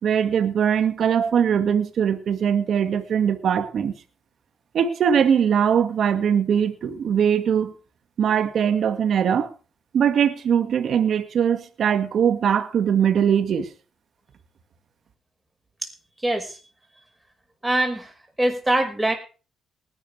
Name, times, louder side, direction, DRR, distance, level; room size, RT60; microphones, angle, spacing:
voice 1, 0.0-3.9 4.7-7.7 8.2-9.5 9.9-13.7, right 8 dB, 60° right, 2.0 m, -21 dB
voice 2, 16.2-16.6 17.6-18.1 18.4-19.1, right 1 dB, 10° right, 5.7 m, -23 dB
19.5 x 12.0 x 3.4 m
cardioid pair, 90°, 0 cm